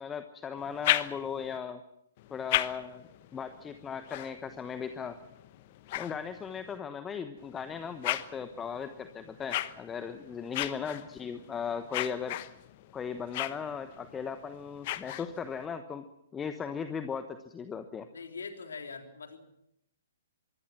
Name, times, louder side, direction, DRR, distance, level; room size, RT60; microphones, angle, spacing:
voice 1, 0.0-1.8 2.3-3.0 3.3-5.2 5.9-12.4 12.9-16.1 16.3-18.1, left 6 dB, 15° left, 10 dB, 1.1 m, -37 dB
sound 1, 0.6-1.6 2.2-6.8 7.4-15.7, left 15 dB, 35° left, 1.1 m, -37 dB
voice 2, 18.1-19.4, left 5 dB, 65° left, 5 dB, 3.7 m, -42 dB
25.5 x 22.0 x 6.0 m, 0.78 s
figure-of-eight pair, 120°, 0 cm